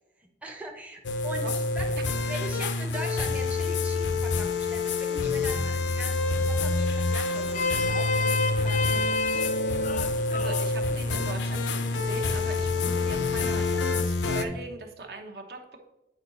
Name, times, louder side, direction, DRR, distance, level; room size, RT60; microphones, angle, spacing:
voice 1, 0.2-1.5 1.7-1.9 2.2-9.3, right 1 dB, 10° right, 2 dB, 0.6 m, -41 dB
sound 1, 1.0-14.4, left 3 dB, 85° left, 0.6 m, -27 dB
Vehicle horn car horn honking, 7.3-13.7, left 4 dB, 45° left, 0.3 m, -33 dB
voice 2, 10.3-15.8, right 2 dB, 60° right, 3 dB, 1.0 m, -40 dB
8.5 x 4.7 x 4.0 m, 0.98 s
head